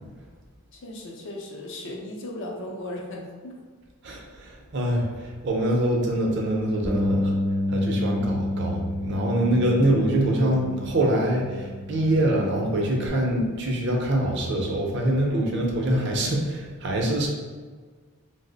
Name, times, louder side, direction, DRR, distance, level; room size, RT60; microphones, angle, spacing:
voice 1, 0.7-3.5, left 1 dB, 55° left, -1 dB, 0.5 m, -36 dB
voice 2, 4.0-7.4 7.7-17.3, right 1 dB, 50° right, 0 dB, 0.5 m, -24 dB
Bass guitar, 6.8-13.1, left 1 dB, 5° right, 0.5 m, -29 dB
2.8 x 2.0 x 3.9 m, 1.5 s
head